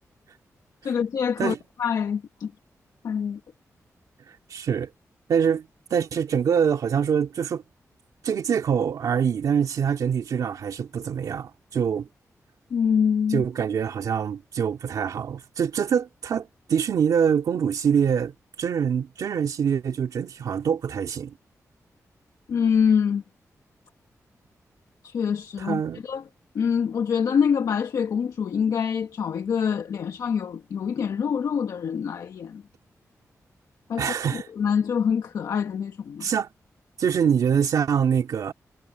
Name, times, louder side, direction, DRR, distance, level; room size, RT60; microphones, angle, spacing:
voice 1, 0.8-2.5 3.0-3.4 12.7-13.4 22.5-23.2 25.0-26.2 26.5-32.6 33.9-34.1 34.6-36.3, left 7 dB, 80° left, 1.3 m, -25 dB
voice 2, 4.5-4.9 5.3-7.6 8.2-12.1 13.3-21.3 25.6-26.0 34.0-34.5 36.2-36.5 37.0-38.5, right 7 dB, 85° right, 2.3 m, -24 dB
wide cardioid pair, 170°, 6 cm